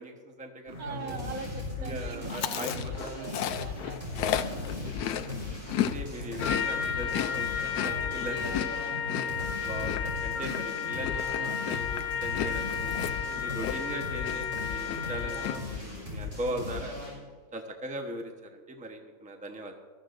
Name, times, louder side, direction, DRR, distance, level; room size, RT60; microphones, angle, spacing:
voice 1, 0.0-1.2 1.8-2.7 3.0-3.1 4.1-5.0 5.9-8.4 9.4-12.9 13.4-17.0 17.5-19.7, right 1 dB, 5° right, 3 dB, 0.8 m, -40 dB
sound 1, 0.7-17.2, left 2 dB, 35° right, 4.8 m, -38 dB
voice 2, 0.8-4.0 5.1-5.6 7.7-8.9, right 4 dB, 70° right, 7 dB, 1.3 m, -43 dB
Chewing mastication, 2.3-6.0 6.2-14.0 14.2-14.6 14.8-15.5, left 10 dB, 85° left, 1.2 m, -34 dB
Trumpet, 6.4-15.7, left 8 dB, 55° left, 1.3 m, -33 dB
20.0 x 13.5 x 2.6 m, 1.5 s
omnidirectional pair, 1.7 m